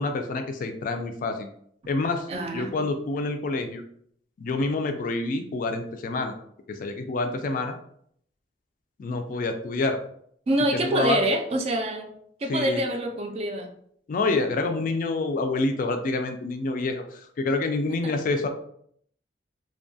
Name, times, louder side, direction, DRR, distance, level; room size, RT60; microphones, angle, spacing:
voice 1, 0.0-1.5 1.9-2.3 2.5-3.8 4.4-6.3 6.7-7.8 9.0-10.0 10.8-11.2 12.5-12.8 14.1-18.5, left 3 dB, 50° left, 6 dB, 0.3 m, -27 dB
voice 2, 2.3-2.7 10.5-12.1 12.4-13.7 18.0-18.1, right 1 dB, 35° right, 4 dB, 0.3 m, -26 dB
2.7 x 2.2 x 2.6 m, 0.66 s
head